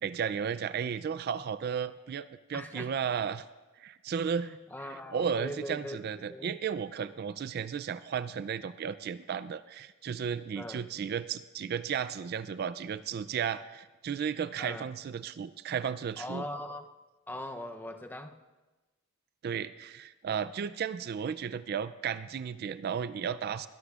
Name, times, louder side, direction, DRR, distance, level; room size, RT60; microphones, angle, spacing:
voice 1, 0.0-3.4 3.8-16.4 19.4-23.7, right 7 dB, 50° right, 15 dB, 0.3 m, -34 dB
voice 2, 2.5-2.9 4.3-6.0 6.3-6.5 10.6-10.9 14.6-14.9 16.2-16.9 17.3-18.4, left 1 dB, 10° left, 6 dB, 0.6 m, -41 dB
21.5 x 13.0 x 2.4 m, 1.2 s
head